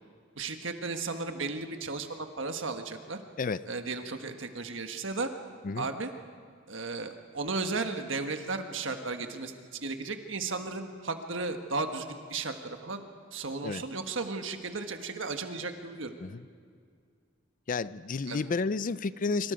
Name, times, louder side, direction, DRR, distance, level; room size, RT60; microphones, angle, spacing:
voice 1, 0.4-3.2 3.7-5.3 5.8-6.1 6.7-9.5 9.8-13.0 13.3-16.1 18.3-18.5, right 3 dB, 70° right, 6 dB, 1.5 m, -35 dB
voice 2, 17.7-19.5, left 4 dB, 45° left, 16 dB, 0.5 m, -31 dB
25.5 x 25.5 x 5.1 m, 2.1 s
head